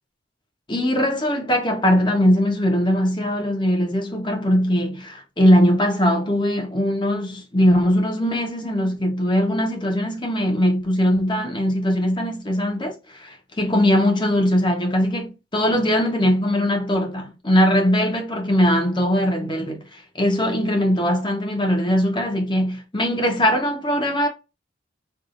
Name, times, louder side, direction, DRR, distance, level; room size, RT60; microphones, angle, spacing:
voice 1, 0.7-24.3, equal, 25° left, 1.1 m, -20 dB
4.7 x 2.7 x 2.5 m
head